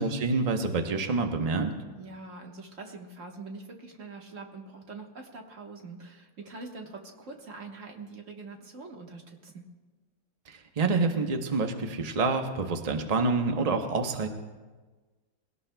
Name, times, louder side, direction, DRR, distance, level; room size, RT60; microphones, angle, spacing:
voice 1, 0.0-1.7 10.5-14.3, right 3 dB, 85° right, 5 dB, 0.3 m, -27 dB
voice 2, 2.0-9.6, right 3 dB, 40° right, 2 dB, 1.6 m, -44 dB
21.5 x 17.5 x 2.2 m, 1.3 s
omnidirectional pair, 2.2 m